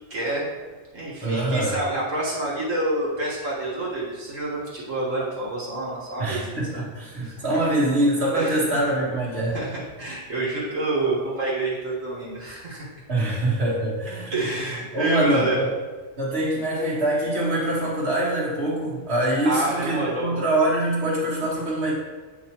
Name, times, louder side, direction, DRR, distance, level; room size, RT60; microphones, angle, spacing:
voice 1, 0.1-0.6 0.9-6.8 7.2-7.6 8.3-8.6 9.5-9.7 10.0-12.9 14.3-15.6 19.4-20.4, right 2 dB, 75° right, -7 dB, 1.9 m, -28 dB
voice 2, 1.2-1.8 6.2-9.6 13.1-14.4 14.9-15.7 16.2-21.9, right 1 dB, 55° right, -6 dB, 1.8 m, -24 dB
8.1 x 5.4 x 2.9 m, 1.4 s
omnidirectional pair, 1.3 m